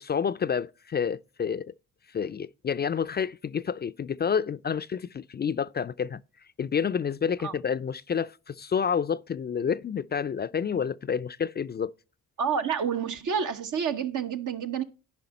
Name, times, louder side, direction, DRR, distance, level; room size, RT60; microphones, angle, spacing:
voice 1, 0.0-1.7 2.1-6.2 6.6-11.9, left 7 dB, 30° left, 0.4 m, -29 dB
voice 2, 12.4-14.8, right 7 dB, 70° right, 1.1 m, -29 dB
10.5 x 5.2 x 4.0 m
supercardioid pair, 50°, 32 cm